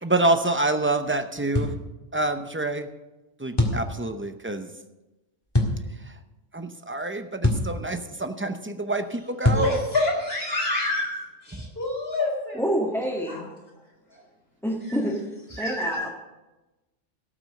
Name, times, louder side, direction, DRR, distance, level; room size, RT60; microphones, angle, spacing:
voice 1, 0.0-1.7 2.1-2.9 3.4-4.7 6.5-9.8 11.5-11.6, right 2 dB, 15° right, 7 dB, 0.6 m, -27 dB
sound 1, 1.5-1.8 3.6-3.8 5.5-5.8 7.4-7.7 9.4-9.7, left 1 dB, 20° left, 1.8 m, -22 dB
voice 2, 9.5-12.6 13.3-13.4 14.1-14.2 14.9-15.0 15.5-16.1, left 2 dB, 55° left, -2 dB, 4.0 m, -28 dB
voice 3, 12.5-13.5 14.6-15.2 15.6-16.1, equal, ahead, -4 dB, 1.6 m, -27 dB
17.5 x 6.2 x 6.5 m, 1.1 s
omnidirectional pair, 1.3 m